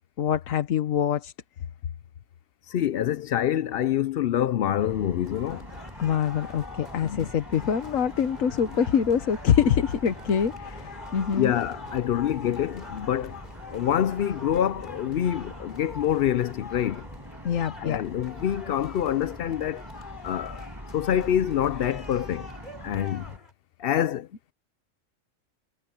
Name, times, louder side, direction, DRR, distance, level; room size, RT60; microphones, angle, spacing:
voice 1, 0.2-1.3 6.0-11.5 17.4-18.0 20.5-20.6, left 8 dB, 90° left, 1.4 m, -25 dB
voice 2, 2.7-5.7 7.0-7.3 11.3-13.4 13.7-17.0 17.8-19.8 20.2-20.6 20.9-22.5 22.8-23.2 23.8-24.5, left 10 dB, 60° left, 0.6 m, -26 dB
sound 1, 4.8-23.4, equal, 15° right, 8.0 m, -44 dB
sound 2, 5.2-23.5, left 3 dB, 35° left, 6.0 m, -44 dB
omnidirectional pair, 1.3 m